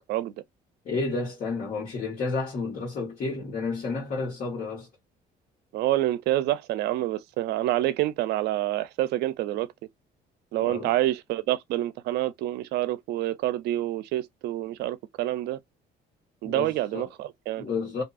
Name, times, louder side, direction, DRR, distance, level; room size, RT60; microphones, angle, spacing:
voice 1, 0.8-4.9 10.6-10.9 16.4-17.1 17.6-18.0, left 4 dB, 55° left, 1.3 m, -31 dB
voice 2, 5.7-9.7 10.5-15.6 16.4-17.7, right 15 dB, 80° right, 0.4 m, -27 dB
2.7 x 2.3 x 2.4 m
cardioid pair, 110°, 17 cm